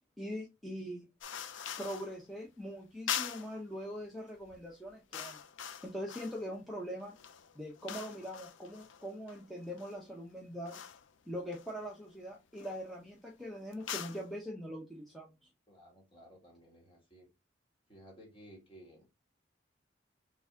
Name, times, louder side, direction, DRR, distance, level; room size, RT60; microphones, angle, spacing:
voice 1, 0.2-1.1 1.8-5.4 5.8-7.1 7.5-10.8 11.3-15.3, equal, ahead, -3 dB, 0.7 m, -42 dB
sound 1, 1.2-2.2 3.1-3.6 4.4-4.6 4.9-6.5 7.0-10.0 10.7-11.1 11.5-12.1 12.5-12.9 13.7-14.3, left 9 dB, 80° left, 0.5 m, -43 dB
voice 2, 15.7-17.3 17.9-19.1, equal, 30° left, 0 dB, 1.8 m, -56 dB
4.0 x 3.6 x 3.4 m, 0.24 s
head